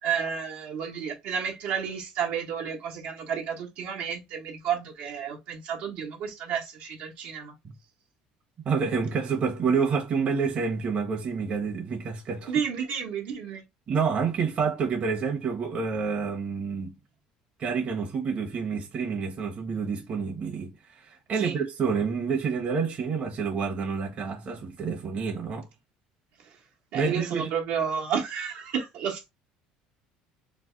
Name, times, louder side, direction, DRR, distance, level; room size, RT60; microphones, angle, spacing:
voice 1, 0.0-7.5 12.5-13.6 21.4-21.6 26.4-26.6 26.9-29.3, right 7 dB, 70° right, 1.2 m, -31 dB
voice 2, 8.6-12.5 13.9-17.0 17.6-25.7 26.9-27.5, right 5 dB, 40° right, 1.1 m, -28 dB
3.2 x 2.1 x 3.8 m
supercardioid pair, 100°, 3 cm